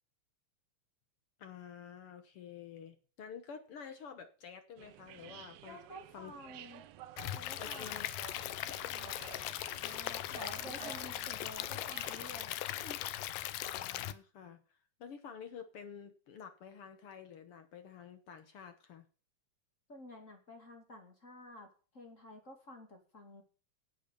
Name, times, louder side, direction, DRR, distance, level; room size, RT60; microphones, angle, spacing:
voice 1, 1.4-5.8 6.1-6.3 7.6-8.1 13.6-19.1, left 7 dB, 60° left, 8 dB, 1.6 m, -50 dB
sound 1, 4.8-12.4, right 12 dB, 75° right, 1.5 m, -52 dB
voice 2, 5.6-6.9 7.3-8.1 9.8-13.0 19.9-21.7 21.9-23.4, left 1 dB, 25° left, 3 dB, 2.5 m, -51 dB
Stream / Liquid, 7.2-14.1, left 14 dB, 85° left, 2.3 m, -39 dB
10.0 x 8.5 x 6.8 m, 0.38 s
omnidirectional pair, 3.7 m